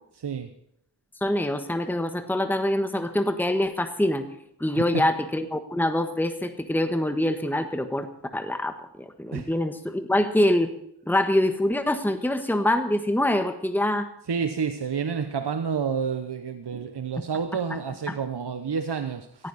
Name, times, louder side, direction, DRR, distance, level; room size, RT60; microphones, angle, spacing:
voice 1, 0.1-0.5 4.7-5.1 9.3-9.5 14.3-19.5, right 6 dB, 70° right, 9 dB, 1.0 m, -29 dB
voice 2, 1.2-4.3 4.6-8.1 8.3-10.7 11.1-14.1 18.1-18.2, left 1 dB, 5° left, 8 dB, 1.4 m, -25 dB
17.5 x 15.0 x 4.2 m, 0.75 s
wide cardioid pair, 55°, 42 cm